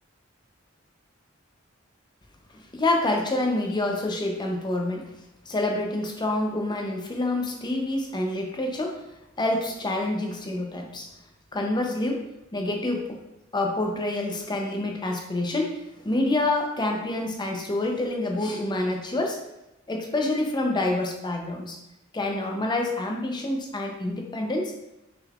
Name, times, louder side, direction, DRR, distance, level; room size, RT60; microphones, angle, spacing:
voice 1, 2.5-5.0 5.5-9.0 9.4-11.1 11.5-12.2 12.5-13.2 13.5-19.4 19.9-21.8 22.1-24.7, left 2 dB, 20° left, 2 dB, 0.6 m, -27 dB
5.8 x 3.8 x 2.4 m, 0.91 s
head